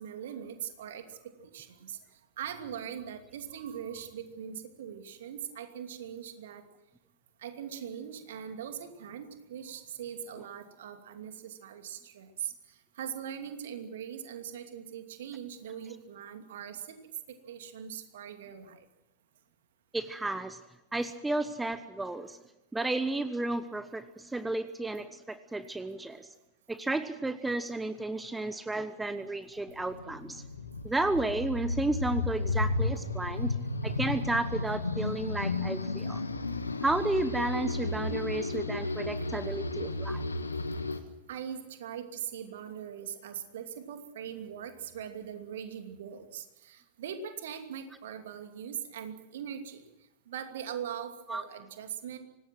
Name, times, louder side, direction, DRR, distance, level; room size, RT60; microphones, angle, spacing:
voice 1, 0.0-2.0 2.4-6.6 7.4-12.5 13.0-18.8 41.3-49.8 50.3-52.2, right 8 dB, 60° right, 7 dB, 2.7 m, -41 dB
voice 2, 19.9-20.6 20.9-22.4 22.7-26.3 26.7-30.4 30.8-33.5 33.8-36.2 36.8-40.2 51.3-51.4, right 2 dB, 10° right, 13 dB, 1.1 m, -32 dB
sound 1, 29.7-41.0, left 3 dB, 80° left, 1.6 m, -33 dB
25.0 x 19.0 x 6.2 m, 0.97 s
figure-of-eight pair, 90°, 0 cm